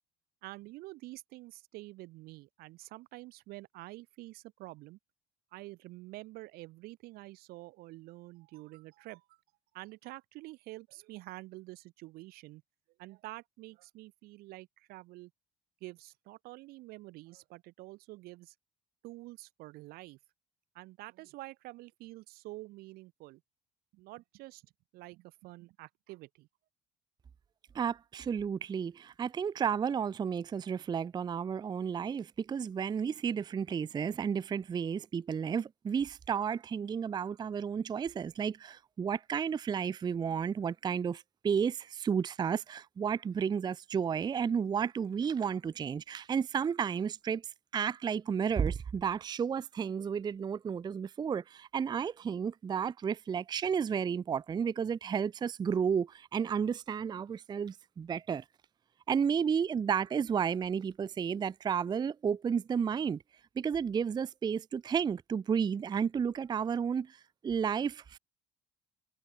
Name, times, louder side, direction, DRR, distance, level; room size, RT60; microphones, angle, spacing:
voice 1, 0.4-5.0 5.5-9.4 9.7-12.6 13.0-15.3 15.8-18.5 19.0-20.2 20.7-23.4 23.9-26.5, right 20 dB, 65° right, 0.7 m, -48 dB
voice 2, 27.7-47.4 47.7-58.4 59.1-63.2 63.6-68.2, right 7 dB, 25° right, 0.4 m, -32 dB
hypercardioid pair, 60°, 17 cm